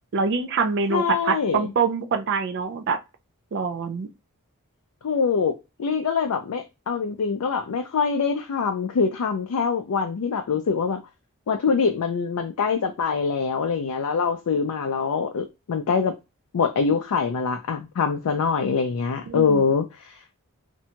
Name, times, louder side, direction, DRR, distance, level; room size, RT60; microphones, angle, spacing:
voice 1, 0.1-3.0 3.5-4.1 19.3-19.6, right 5 dB, 55° right, 0.4 m, -25 dB
voice 2, 0.9-1.7 5.0-11.0 11.5-16.1 16.5-20.4, left 5 dB, 90° left, 0.4 m, -24 dB
2.6 x 2.2 x 2.8 m
head